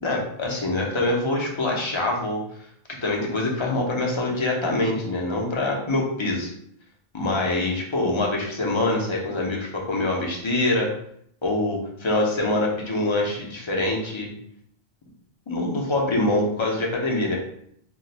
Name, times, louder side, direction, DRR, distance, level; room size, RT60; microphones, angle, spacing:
voice 1, 0.0-2.4 3.0-6.5 7.1-10.9 11.4-14.3 15.5-17.4, left 2 dB, 35° left, -1 dB, 0.6 m, -24 dB
2.4 x 2.2 x 3.9 m, 0.68 s
omnidirectional pair, 1.1 m